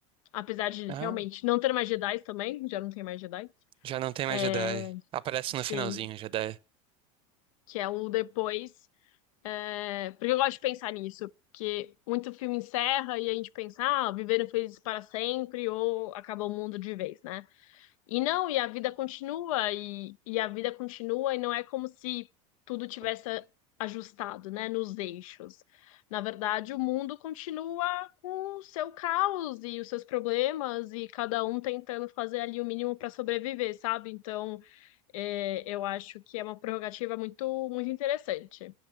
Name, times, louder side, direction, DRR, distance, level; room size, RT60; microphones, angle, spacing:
voice 1, 0.3-3.5 4.3-5.0 5.7-6.0 7.7-8.7 9.4-17.5 17.7-22.3 22.7-23.5 23.8-25.6 25.9-34.9 35.1-38.7, left 17 dB, 85° left, 0.5 m, -32 dB
voice 2, 0.9-1.2 3.8-4.9 5.1-6.6, right 13 dB, 30° right, 0.6 m, -33 dB
11.0 x 5.8 x 8.6 m
supercardioid pair, 145°, 17 cm